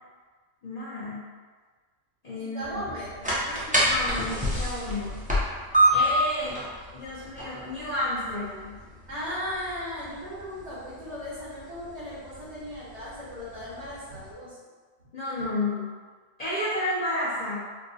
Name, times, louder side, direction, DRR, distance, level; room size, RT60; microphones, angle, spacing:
voice 1, 0.6-1.3 2.2-2.8 3.8-5.3 5.9-6.6 6.9-8.8 15.1-16.0 16.4-17.6, left 1 dB, 40° left, -10 dB, 0.7 m, -31 dB
voice 2, 2.4-3.9 9.1-14.6, equal, 65° right, -7 dB, 1.3 m, -37 dB
sound 1, 2.6-14.3, right 1 dB, 10° right, 0.4 m, -30 dB
4.5 x 2.1 x 2.7 m, 1.5 s
omnidirectional pair, 1.3 m